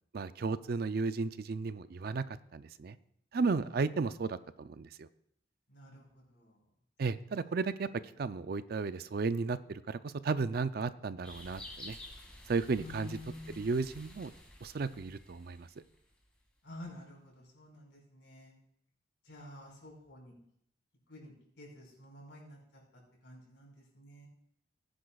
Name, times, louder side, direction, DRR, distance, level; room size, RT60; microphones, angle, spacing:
voice 1, 0.1-3.0 3.3-5.1 7.0-7.9 8.2-12.0 12.5-13.2 13.5-14.3 14.6-15.7, right 4 dB, 55° right, 14 dB, 0.4 m, -34 dB
voice 2, 5.7-6.6 12.8-13.8 16.6-18.5 19.2-20.3 21.1-24.3, left 2 dB, 70° left, -2 dB, 4.9 m, -51 dB
sound 1, 11.2-16.2, left 1 dB, 5° left, 2.1 m, -51 dB
19.0 x 10.0 x 2.3 m, 0.71 s
head